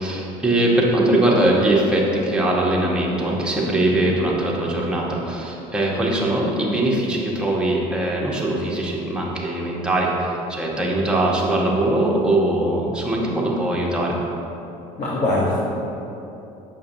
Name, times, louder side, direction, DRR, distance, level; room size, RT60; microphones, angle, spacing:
voice 1, 0.0-14.2, right 1 dB, 5° right, -4 dB, 1.2 m, -21 dB
voice 2, 3.6-4.0 15.0-15.6, left 2 dB, 40° left, -7 dB, 1.2 m, -23 dB
6.6 x 5.5 x 2.7 m, 2.9 s
supercardioid pair, 80°, 17 cm